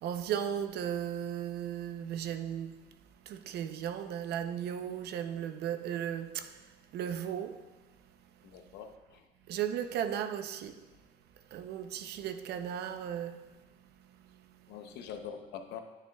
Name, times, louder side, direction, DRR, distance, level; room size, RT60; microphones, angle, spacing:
voice 1, 0.0-2.7 3.3-6.5 6.9-7.6 9.5-10.7 11.5-13.5, right 9 dB, 75° right, 0.7 m, -35 dB
voice 2, 8.4-9.2 14.7-15.8, left 7 dB, 90° left, 0.8 m, -44 dB
10.0 x 9.2 x 2.3 m
cardioid pair, 110°, 17 cm